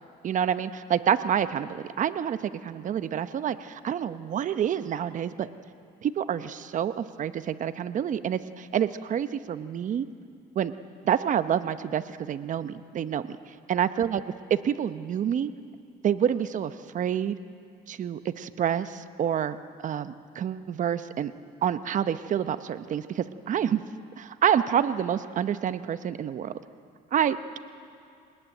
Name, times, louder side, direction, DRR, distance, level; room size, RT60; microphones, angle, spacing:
voice 1, 0.2-5.5 6.0-10.1 10.5-10.7 11.0-13.4 13.7-14.2 14.5-15.5 16.0-17.4 17.9-19.6 19.8-21.3 21.6-23.8 24.2-26.5 27.1-27.6, right 9 dB, 50° right, 12 dB, 0.9 m, -28 dB
21.5 x 19.5 x 9.1 m, 2.4 s
cardioid pair, 110°, 17 cm